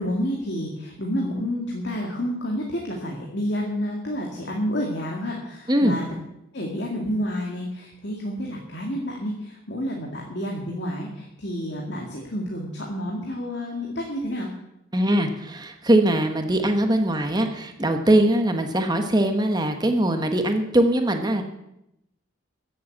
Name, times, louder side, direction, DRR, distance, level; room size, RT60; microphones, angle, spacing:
voice 1, 0.0-6.1 6.5-14.5, equal, 55° left, -1 dB, 2.3 m, -29 dB
voice 2, 14.9-21.4, right 1 dB, 20° right, 5 dB, 1.1 m, -21 dB
14.5 x 7.9 x 8.6 m, 0.86 s
head